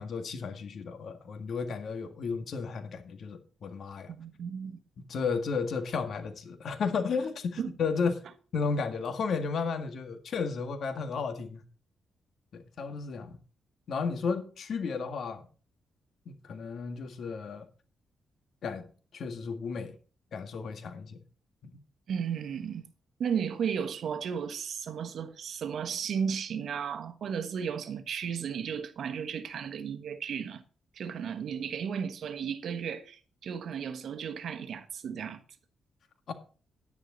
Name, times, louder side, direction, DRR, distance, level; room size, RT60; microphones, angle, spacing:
voice 1, 0.0-4.1 5.1-8.2 8.5-11.6 12.5-13.4 13.9-15.4 16.3-17.7 18.6-18.9 19.1-20.0 20.3-21.2 21.6-21.7 36.3-36.4, left 5 dB, 65° left, 1.8 m, -33 dB
voice 2, 4.1-4.8 7.6-7.7 22.1-22.9 23.2-30.6 30.9-35.4, right 7 dB, 70° right, 1.2 m, -34 dB
10.5 x 10.0 x 4.0 m
cardioid pair, 100°, 0 cm